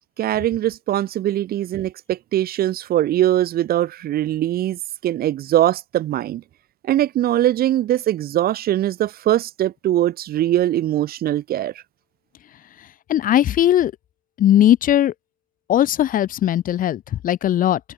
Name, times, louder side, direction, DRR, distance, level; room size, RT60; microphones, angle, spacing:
voice 1, 0.2-6.4 6.8-11.7, right 13 dB, 65° right, 1.9 m, -21 dB
voice 2, 13.1-13.9 14.4-15.1 15.7-17.8, left 11 dB, 55° left, 0.9 m, -18 dB
cardioid pair, 110°, 17 cm